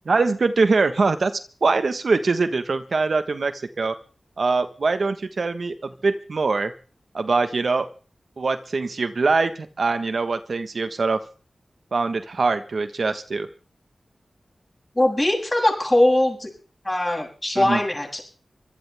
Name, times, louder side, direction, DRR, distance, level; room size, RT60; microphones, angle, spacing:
voice 1, 0.0-1.3 1.6-4.0 4.4-5.7 6.0-6.7 7.1-7.9 8.4-11.2 11.9-13.5 17.6-17.8, right 4 dB, 70° right, 9 dB, 1.3 m, -23 dB
voice 2, 14.9-16.5 16.8-18.4, left 1 dB, 25° left, 1 dB, 7.8 m, -21 dB
25.0 x 16.0 x 3.5 m, 0.38 s
wide cardioid pair, 55°, 0 cm